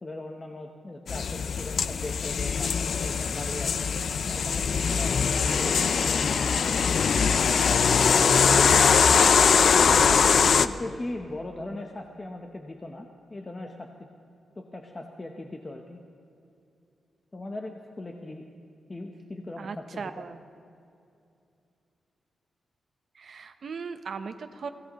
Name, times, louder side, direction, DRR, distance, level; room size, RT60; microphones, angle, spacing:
voice 1, 0.0-3.9 4.3-6.8 7.2-8.7 9.8-13.9 14.6-16.0 17.3-18.4 18.9-20.3, left 2 dB, 25° left, 3 dB, 0.8 m, -39 dB
sound 1, 1.1-10.7, left 6 dB, 60° left, 0.4 m, -22 dB
voice 2, 19.6-20.4 23.1-24.7, right 5 dB, 55° right, 8 dB, 0.8 m, -38 dB
24.5 x 16.5 x 3.0 m, 2.6 s
wide cardioid pair, 140°, 0 cm